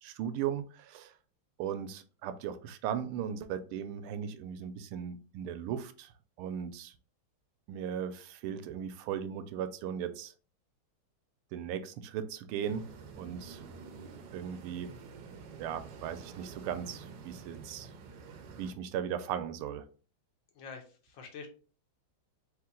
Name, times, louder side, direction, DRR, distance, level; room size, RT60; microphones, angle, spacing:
voice 1, 0.0-1.1 1.6-6.1 6.4-6.9 7.7-10.3 11.5-12.9 13.2-13.6 14.3-14.9 15.6-17.9 18.6-19.9, right 8 dB, 85° right, 1.5 m, -37 dB
sound 1, 12.6-18.7, right 5 dB, 70° right, 1.0 m, -48 dB
voice 2, 20.5-21.5, left 5 dB, 65° left, 1.6 m, -46 dB
3.7 x 3.0 x 3.7 m
omnidirectional pair, 2.3 m